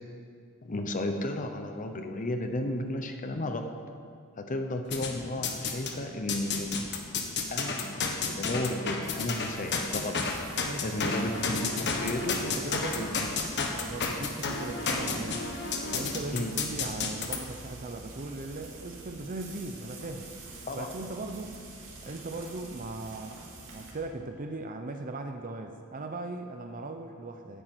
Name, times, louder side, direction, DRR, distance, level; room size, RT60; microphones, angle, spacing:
voice 1, 0.6-3.7 4.4-6.9 7.5-13.3 16.3-16.5 20.7-20.9, left 1 dB, 35° left, 6 dB, 0.8 m, -34 dB
sound 1, 4.9-5.9 6.3-17.4, left 4 dB, 50° left, 1.4 m, -31 dB
Frying (food), 9.0-23.9, right 2 dB, 60° right, 2.5 m, -47 dB
voice 2, 10.6-11.2 12.2-13.2 13.7-15.4 15.9-20.3 20.7-21.6 22.0-27.6, right 2 dB, 40° right, 5 dB, 0.7 m, -39 dB
10.0 x 9.3 x 8.0 m, 2.3 s
head